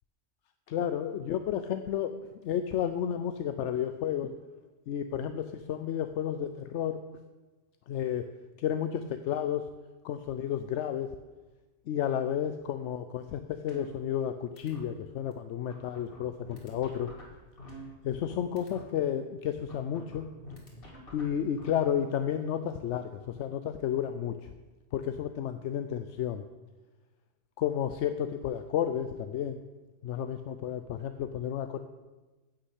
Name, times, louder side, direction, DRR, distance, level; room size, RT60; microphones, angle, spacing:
voice 1, 0.7-2.1 2.4-4.3 4.9-7.0 7.9-8.3 8.6-9.7 10.0-11.1 11.9-17.1 18.0-20.3 21.1-24.5 24.9-26.4 27.6-29.6 30.0-31.8, left 9 dB, 80° left, 9 dB, 0.9 m, -32 dB
sound 1, 13.7-14.3 14.6-14.8 15.3-15.4 15.7-18.3 18.6-18.8 19.7-21.7, equal, 50° left, 2.2 m, -47 dB
9.8 x 6.4 x 8.2 m, 1.2 s
omnidirectional pair, 1.2 m